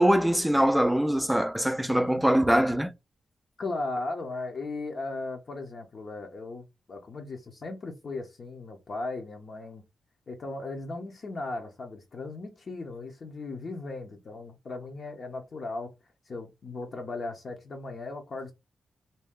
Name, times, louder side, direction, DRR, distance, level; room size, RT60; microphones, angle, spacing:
voice 1, 0.0-2.9, equal, 5° right, 0.4 m, -23 dB
voice 2, 3.6-9.8 10.3-15.9 16.3-18.5, left 3 dB, 55° left, 0.7 m, -37 dB
2.7 x 2.2 x 3.5 m
cardioid pair, 75°, 0 cm